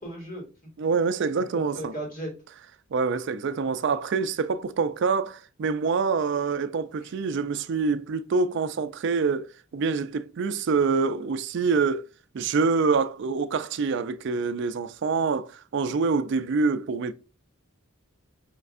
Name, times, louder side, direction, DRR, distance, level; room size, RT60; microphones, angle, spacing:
voice 1, 0.0-0.7 1.4-2.3 7.0-7.2, right 1 dB, 40° left, 2.1 m, -37 dB
voice 2, 0.8-1.9 2.9-12.1 12.3-17.1, right 4 dB, 55° right, 0.3 m, -26 dB
5.2 x 3.3 x 2.4 m
head